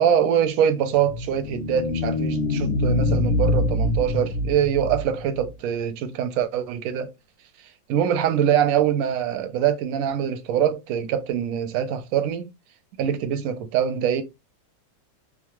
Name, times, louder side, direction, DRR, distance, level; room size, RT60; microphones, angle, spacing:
voice 1, 0.0-7.1 7.9-12.5 13.0-14.2, right 9 dB, 70° right, 0.9 m, -23 dB
sound 1, 0.9-5.5, left 2 dB, 75° left, 1.1 m, -24 dB
3.1 x 2.0 x 3.0 m
omnidirectional pair, 1.9 m